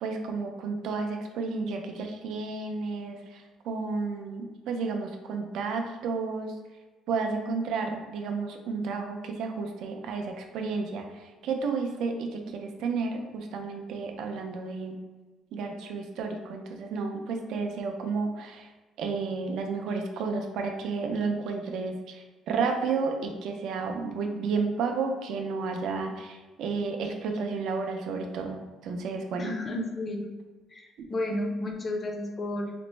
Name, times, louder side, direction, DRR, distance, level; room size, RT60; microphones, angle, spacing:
voice 1, 0.0-6.5 7.1-15.0 15.5-18.7 19.0-29.5 31.0-31.1, right 4 dB, 60° right, 4 dB, 0.4 m, -32 dB
voice 2, 29.4-30.3 30.7-32.7, left 1 dB, 20° left, 2 dB, 0.4 m, -32 dB
4.2 x 2.0 x 3.1 m, 1.3 s
cardioid pair, 180°, 0 cm